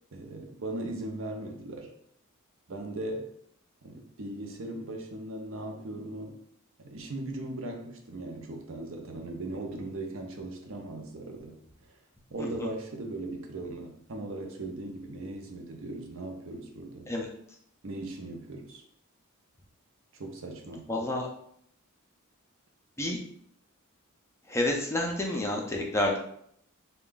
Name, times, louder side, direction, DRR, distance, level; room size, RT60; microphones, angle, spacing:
voice 1, 0.1-1.9 2.7-3.3 3.8-6.4 6.8-11.6 12.3-17.1 17.8-18.8 20.1-20.9, right 2 dB, 60° right, 3 dB, 0.6 m, -38 dB
voice 2, 20.9-21.3 23.0-23.2 24.5-26.2, left 1 dB, 15° left, 0 dB, 0.4 m, -29 dB
3.6 x 2.3 x 3.8 m, 0.68 s
head